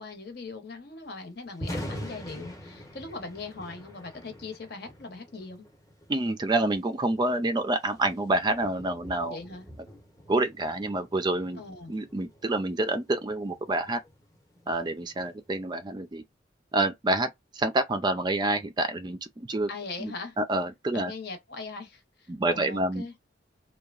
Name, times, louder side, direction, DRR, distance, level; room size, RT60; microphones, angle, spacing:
voice 1, 0.0-5.7 9.2-9.6 11.6-11.9 19.7-20.4 20.9-23.1, left 3 dB, 60° left, 1.0 m, -40 dB
Thunder, 1.5-15.6, equal, 15° left, 0.8 m, -45 dB
voice 2, 6.1-9.4 10.3-11.6 11.9-14.0 14.7-16.2 16.7-19.7 20.0-21.1 22.3-23.1, right 2 dB, 25° right, 0.4 m, -28 dB
2.9 x 2.2 x 2.4 m
head